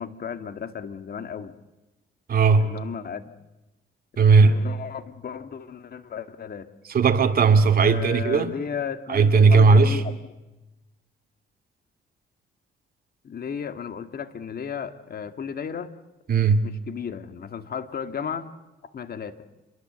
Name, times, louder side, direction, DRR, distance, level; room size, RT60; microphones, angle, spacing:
voice 1, 0.0-1.5 2.6-3.3 4.3-6.7 7.8-10.2 13.2-15.9 16.6-18.5 18.9-19.4, left 7 dB, 50° left, 1.9 m, -34 dB
voice 2, 2.3-2.7 4.2-4.6 6.9-8.5 9.1-10.0 16.3-16.7, right 4 dB, 50° right, 2.7 m, -17 dB
28.0 x 22.5 x 8.0 m
cardioid pair, 90°, 20 cm